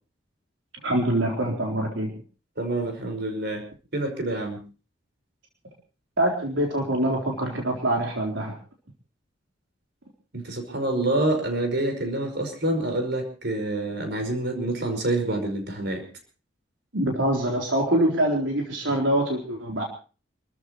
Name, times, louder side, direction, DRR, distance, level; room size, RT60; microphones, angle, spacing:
voice 1, 0.8-2.1 6.2-8.5 16.9-19.8, right 1 dB, 90° right, 0 dB, 4.0 m, -24 dB
voice 2, 2.6-3.7 3.9-4.6 10.3-16.0, right 1 dB, 60° right, 6 dB, 5.3 m, -27 dB
28.5 x 14.0 x 3.1 m, 0.35 s
head